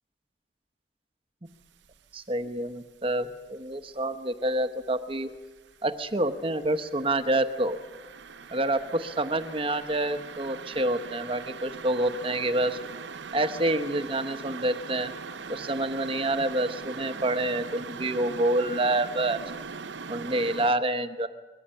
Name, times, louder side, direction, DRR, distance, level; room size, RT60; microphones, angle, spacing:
sound 1, 1.7-2.1 2.4-4.0 4.3-20.7, right 5 dB, 75° right, 0.8 m, -41 dB
voice 1, 2.1-5.3 5.8-7.8 8.5-12.8 13.3-15.1 15.5-19.4 20.1-21.3, right 1 dB, 30° right, 9 dB, 0.9 m, -27 dB
22.0 x 14.5 x 8.7 m, 1.3 s
head